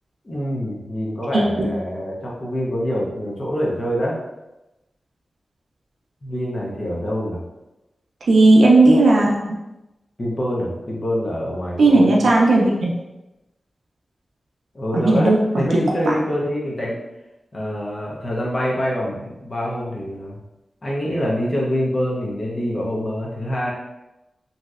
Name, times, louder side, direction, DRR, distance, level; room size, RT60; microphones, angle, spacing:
voice 1, 0.2-4.2 6.2-7.4 10.2-12.3 14.7-17.0 17.5-20.4 20.8-23.7, equal, 30° left, -4 dB, 0.6 m, -25 dB
voice 2, 1.3-1.7 8.3-9.5 11.8-12.9 15.0-15.4, right 2 dB, 75° right, -2 dB, 0.4 m, -14 dB
3.1 x 2.7 x 2.4 m, 0.98 s
wide cardioid pair, 155°, 0 cm